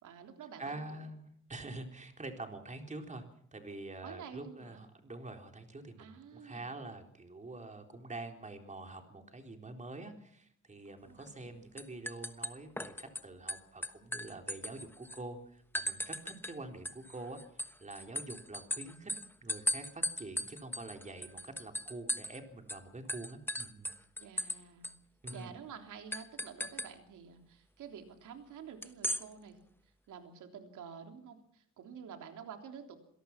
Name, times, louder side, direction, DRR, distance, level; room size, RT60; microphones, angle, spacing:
voice 1, 0.0-0.8 4.0-4.8 6.0-6.7 10.9-11.4 24.2-24.9 25.3-29.6 30.1-33.0, right 7 dB, 90° right, 4 dB, 3.5 m, -49 dB
voice 2, 0.6-3.2 3.5-19.1 19.4-23.9 24.3-24.5 25.2-25.5, right 2 dB, 25° right, 4 dB, 4.0 m, -46 dB
sound 1, 11.2-11.5 11.8-13.2 13.5-15.2 15.7-16.5 16.8-22.4 22.7-22.8 23.1-24.6 24.8-24.9 25.3-25.4 26.1-26.9 28.8-29.2, left 1 dB, 5° left, 1.2 m, -37 dB
26.5 x 18.0 x 6.0 m, 0.64 s
cardioid pair, 115°, 30 cm